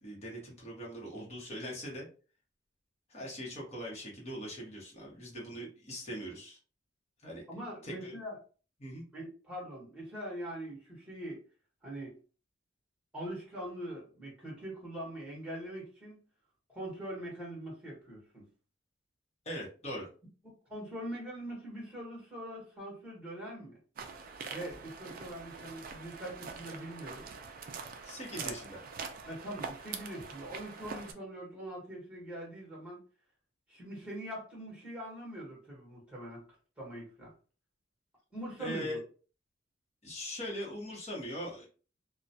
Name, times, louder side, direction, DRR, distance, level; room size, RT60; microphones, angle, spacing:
voice 1, 0.0-2.1 3.1-6.6 7.2-7.4 7.8-8.1 8.8-9.0 19.4-20.1 28.0-28.8 38.6-39.0 40.0-41.7, equal, 35° left, -3 dB, 1.0 m, -41 dB
voice 2, 7.5-8.4 9.1-11.4 11.8-12.2 13.1-16.2 16.7-18.4 20.4-23.8 24.5-27.3 28.3-28.7 29.2-33.0 33.7-36.4 36.8-37.3 38.3-39.0, right 1 dB, 5° right, -4 dB, 1.2 m, -42 dB
sound 1, 24.0-31.1, right 5 dB, 50° right, 0.4 m, -44 dB
2.3 x 2.2 x 2.7 m, 0.37 s
head